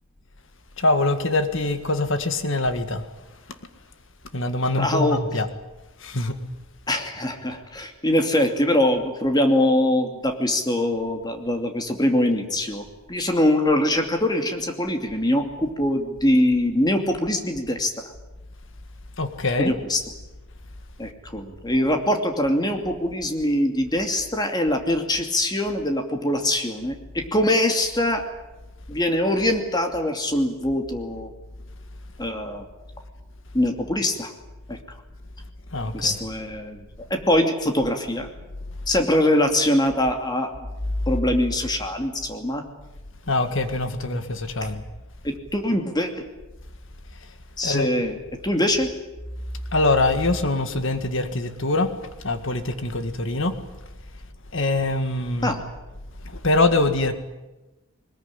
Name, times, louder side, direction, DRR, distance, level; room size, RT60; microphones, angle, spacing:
voice 1, 0.8-3.1 4.3-5.5 6.0-6.4 19.2-19.7 35.7-36.1 43.3-44.8 47.2-47.3 47.6-47.9 49.7-51.9 52.2-53.5 54.5-55.6 56.2-57.1, left 2 dB, 55° left, 9 dB, 1.9 m, -23 dB
voice 2, 4.8-5.2 6.9-12.8 13.1-17.9 19.6-20.0 21.0-28.2 28.9-31.3 32.2-32.7 33.5-34.3 34.7-34.8 35.9-36.8 37.1-38.3 38.9-40.7 41.1-42.6 45.2-46.2 47.6-48.2 48.4-48.9 55.4-55.6, left 1 dB, 20° left, 5 dB, 2.6 m, -23 dB
21.5 x 20.5 x 10.0 m, 1.1 s
head